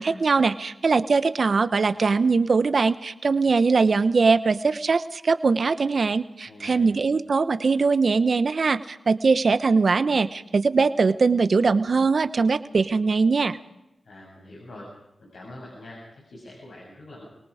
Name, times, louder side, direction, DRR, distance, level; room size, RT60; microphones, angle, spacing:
voice 1, 0.0-13.6, right 4 dB, 65° right, 12 dB, 1.1 m, -21 dB
voice 2, 6.4-6.9 14.0-14.9 15.2-17.3, left 1 dB, 80° left, -3 dB, 7.4 m, -44 dB
28.0 x 19.0 x 5.0 m, 0.89 s
cardioid pair, 45°, 0 cm